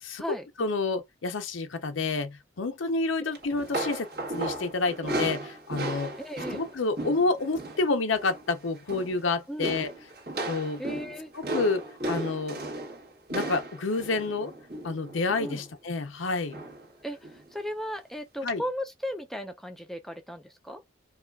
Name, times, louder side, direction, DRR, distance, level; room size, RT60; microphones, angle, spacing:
voice 1, 0.6-4.1 4.3-6.1 6.5-9.9 10.5-10.8 11.3-12.6 13.3-14.5 14.8-16.6 18.4-18.6, left 3 dB, 85° left, 0.7 m, -29 dB
sound 1, 3.3-7.9 8.1-8.5 8.8-9.2 9.6-15.6 16.5-16.9 17.2-17.4 18.5-18.6, right 1 dB, 55° right, 1.5 m, -35 dB
voice 2, 6.2-6.6 9.5-9.7 10.8-11.3 15.4-15.6 17.0-17.2 17.5-20.8, equal, ahead, 0.6 m, -35 dB
4.8 x 2.4 x 2.3 m
head